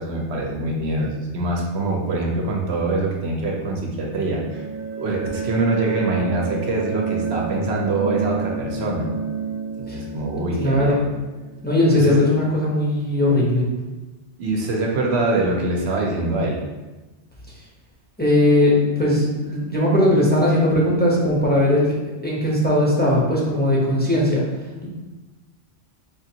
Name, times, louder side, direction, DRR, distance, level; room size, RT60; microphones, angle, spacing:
voice 1, 0.0-4.7 5.0-9.1 9.8-11.0 11.9-12.2 14.4-16.6, right 2 dB, 70° right, 0 dB, 0.9 m, -24 dB
sound 1, 4.0-12.6, right 4 dB, 50° right, 0.6 m, -30 dB
voice 2, 10.6-11.0 11.6-13.6 18.2-22.0 22.2-24.4, left 1 dB, 10° left, -6 dB, 0.6 m, -18 dB
5.0 x 2.5 x 2.7 m, 1.2 s
omnidirectional pair, 1.2 m